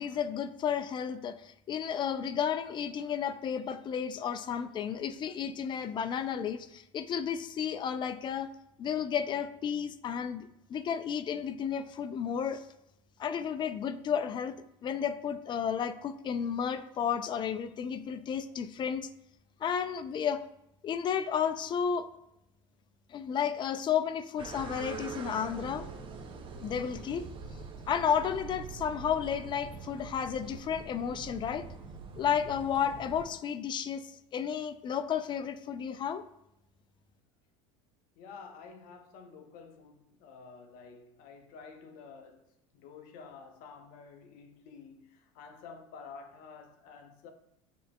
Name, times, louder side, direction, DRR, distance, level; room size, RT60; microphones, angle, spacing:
voice 1, 0.0-8.5 8.8-12.6 13.2-14.6 14.8-19.1 19.6-20.4 20.8-22.1 23.1-25.9 26.6-27.3 27.9-31.7 32.2-36.2, left 8 dB, 30° left, 0.3 m, -32 dB
sound 1, 24.4-33.3, right 5 dB, 30° right, 0.7 m, -44 dB
voice 2, 38.2-42.5 42.7-47.3, left 5 dB, 55° left, 0.7 m, -50 dB
6.6 x 2.8 x 2.3 m
hypercardioid pair, 85°, 17 cm